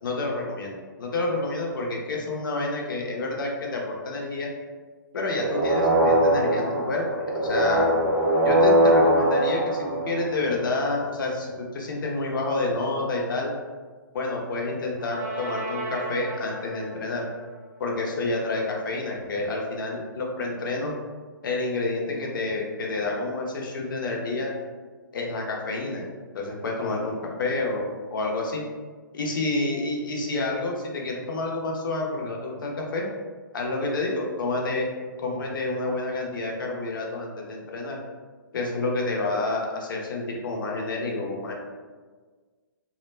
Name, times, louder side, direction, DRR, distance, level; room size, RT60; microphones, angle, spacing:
voice 1, 0.0-4.5 5.1-7.9 8.4-13.5 14.1-17.3 17.8-21.0 21.4-24.5 25.1-28.6 29.1-33.1 33.5-34.9 35.2-38.0 38.5-41.5, left 2 dB, 70° left, -1 dB, 0.7 m, -29 dB
sound 1, 5.3-10.7 15.0-16.7, right 1 dB, 20° right, 0.5 m, -23 dB
2.2 x 2.1 x 3.1 m, 1.4 s
hypercardioid pair, 145°, 11 cm